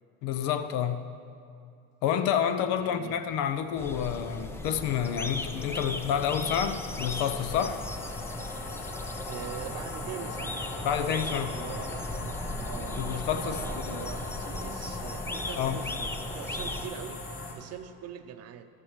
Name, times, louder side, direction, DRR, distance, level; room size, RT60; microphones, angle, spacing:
voice 1, 0.2-1.1 2.0-7.8 10.8-11.5 13.0-13.6 13.9-14.1 15.6-15.8, left 9 dB, 65° left, 0.7 m, -29 dB
voice 2, 2.8-3.1 9.2-10.6 11.0-12.3 12.6-18.7, right 9 dB, 45° right, 0.7 m, -43 dB
sound 1, 3.1-17.5, left 2 dB, 45° left, 2.7 m, -41 dB
sound 2, 3.8-16.9, left 2 dB, 5° left, 0.4 m, -37 dB
13.5 x 12.5 x 3.1 m
supercardioid pair, 110°, 36 cm